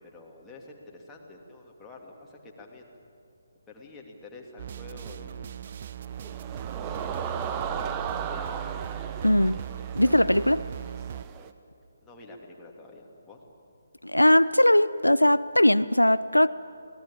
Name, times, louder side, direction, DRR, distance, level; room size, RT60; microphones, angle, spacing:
voice 1, 0.0-2.9 3.7-5.5 6.2-8.7 12.0-13.4, left 2 dB, 10° left, -2 dB, 2.6 m, -48 dB
sound 1, 4.6-11.3, right 9 dB, 40° right, 0.5 m, -38 dB
sound 2, 6.0-11.5, right 7 dB, 20° right, 0.9 m, -36 dB
voice 2, 9.2-9.6 9.9-10.6 14.0-16.5, left 1 dB, 85° left, 15 dB, 0.5 m, -20 dB
25.5 x 18.5 x 8.7 m, 2.5 s
figure-of-eight pair, 145°, 0 cm